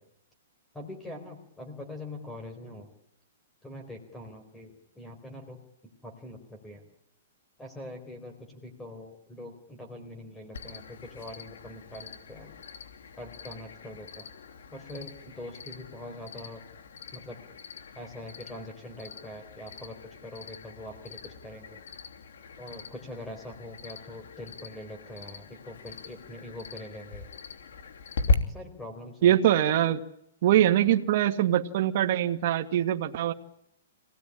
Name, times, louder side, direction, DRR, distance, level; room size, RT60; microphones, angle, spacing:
voice 1, 0.7-2.9 3.6-6.8 7.6-12.5 13.2-14.3 14.7-16.6 17.1-17.4 18.0-21.8 22.6-27.3 28.3-29.3, left 1 dB, 5° left, 6 dB, 4.3 m, -43 dB
Cricket, 10.5-28.3, left 4 dB, 80° left, 3.1 m, -38 dB
voice 2, 29.2-30.0 30.4-33.3, right 11 dB, 45° right, 4 dB, 1.9 m, -23 dB
26.0 x 19.0 x 10.0 m, 0.76 s
hypercardioid pair, 165°, 0 cm